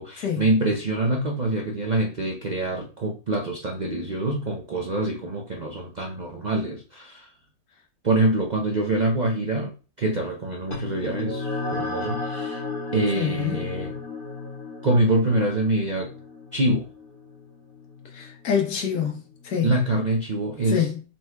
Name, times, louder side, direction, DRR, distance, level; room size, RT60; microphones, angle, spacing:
voice 1, 0.0-7.3 8.0-9.7 10.0-12.6 12.9-13.9 14.8-16.1 16.5-16.9 19.6-20.8, right 2 dB, 60° right, 0.4 m, -25 dB
sound 1, 10.7-19.6, left 3 dB, 45° left, 0.9 m, -34 dB
voice 2, 13.2-13.6 18.1-19.7 20.7-21.0, left 8 dB, 85° left, 1.5 m, -26 dB
4.2 x 2.2 x 4.4 m
omnidirectional pair, 1.6 m